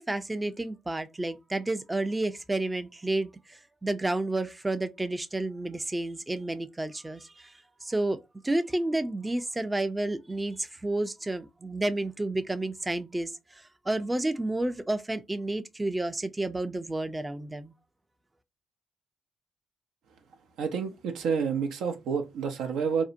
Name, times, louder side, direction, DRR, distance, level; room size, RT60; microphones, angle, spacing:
voice 1, 0.0-7.5 7.8-8.2 8.4-17.7, right 2 dB, 20° right, 0.4 m, -31 dB
voice 2, 20.6-23.0, right 6 dB, 75° right, 0.5 m, -29 dB
2.6 x 2.1 x 2.5 m
supercardioid pair, 55°, 0 cm